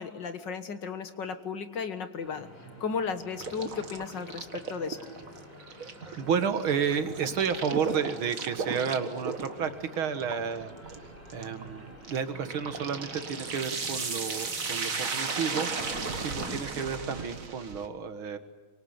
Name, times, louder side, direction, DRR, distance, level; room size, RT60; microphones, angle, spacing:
voice 1, 0.0-2.5 2.8-5.0 16.4-16.6, left 5 dB, 60° left, 9 dB, 2.1 m, -35 dB
sound 1, 2.2-17.3, equal, 5° left, 6.4 m, -49 dB
sound 2, 3.4-17.9, right 4 dB, 45° right, 2.0 m, -36 dB
voice 2, 5.7-15.9 16.1-18.4, right 7 dB, 85° right, 9 dB, 2.4 m, -32 dB
25.5 x 23.5 x 9.7 m, 1.3 s
omnidirectional pair, 2.2 m